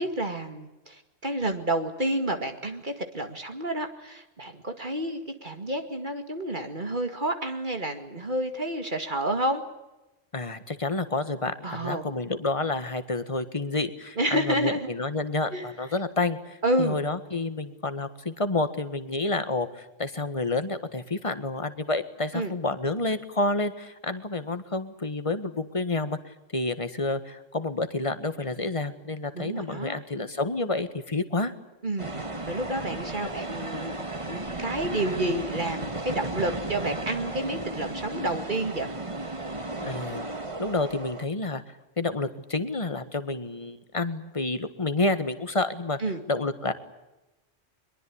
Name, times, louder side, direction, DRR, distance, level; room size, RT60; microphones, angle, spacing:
voice 1, 0.0-9.6 11.6-12.1 14.2-14.9 15.5-15.6 16.6-17.0 22.3-22.5 29.3-30.0 31.8-32.1 32.5-34.0 34.3-38.9 46.0-46.2, right 1 dB, 40° right, 7 dB, 2.3 m, -29 dB
voice 2, 10.3-31.5 39.8-40.2 40.6-41.6 42.0-46.0 46.3-46.7, left 2 dB, 25° left, 11 dB, 1.7 m, -29 dB
sound 1, 32.0-41.2, right 2 dB, 25° right, 1.8 m, -34 dB
23.0 x 22.0 x 8.7 m, 0.98 s
omnidirectional pair, 1.3 m